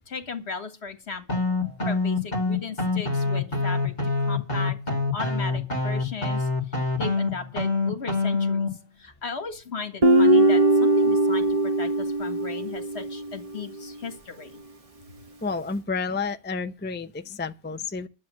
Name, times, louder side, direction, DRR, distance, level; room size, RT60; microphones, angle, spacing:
voice 1, 0.1-1.4 1.8-4.8 5.1-6.5 7.0-8.7 9.0-14.6, left 5 dB, 70° left, 1.9 m, -36 dB
sound 1, 1.3-8.7, left 3 dB, 40° left, 2.0 m, -25 dB
Guitar, 10.0-13.3, right 1 dB, 35° right, 1.1 m, -20 dB
voice 2, 15.4-18.1, left 4 dB, 15° left, 0.5 m, -30 dB
11.5 x 7.5 x 7.5 m
omnidirectional pair, 1.2 m